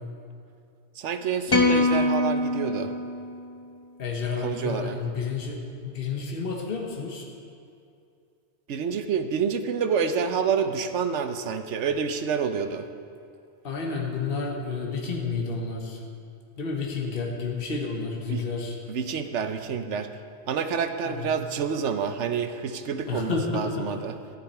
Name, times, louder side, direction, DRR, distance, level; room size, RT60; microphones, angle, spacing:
voice 1, 1.0-2.9 4.4-5.0 8.7-12.8 18.3-18.5 18.9-20.1 20.5-24.1, right 6 dB, 80° right, 8 dB, 1.1 m, -28 dB
sound 1, 1.5-3.9, left 2 dB, 20° left, 1.0 m, -24 dB
voice 2, 4.0-5.6 5.8-7.2 13.6-16.0 16.6-18.8 21.0-21.3 23.1-23.8, left 4 dB, 55° left, 0 dB, 1.4 m, -30 dB
14.0 x 11.0 x 4.3 m, 2.5 s
omnidirectional pair, 1.2 m